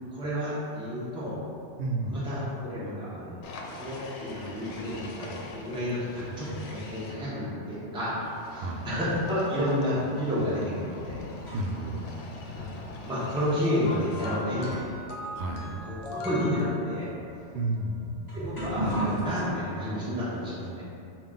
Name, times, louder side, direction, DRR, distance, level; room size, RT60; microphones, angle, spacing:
voice 1, 0.1-1.3 2.0-3.4 3.8-8.2 8.5-11.2 12.5-12.7 13.0-14.8 15.6-17.1 18.3-20.8, equal, 5° right, -11 dB, 1.0 m, -30 dB
voice 2, 1.8-2.3 8.6-8.9 11.5-12.0 15.3-15.7 17.5-18.2, right 2 dB, 70° right, 1 dB, 0.8 m, -31 dB
sound 1, 3.4-7.1 8.1-14.5, left 2 dB, 90° left, 0.9 m, -43 dB
sound 2, 5.8-6.8 7.7-7.8 8.5-11.9 12.2-12.3 13.1-13.3 14.1-14.2 14.6-19.5, right 1 dB, 20° left, 1.5 m, -38 dB
sound 3, 13.9-17.4 18.5-18.6, left 2 dB, 70° left, 0.9 m, -40 dB
5.6 x 2.5 x 3.7 m, 2.7 s
omnidirectional pair, 1.2 m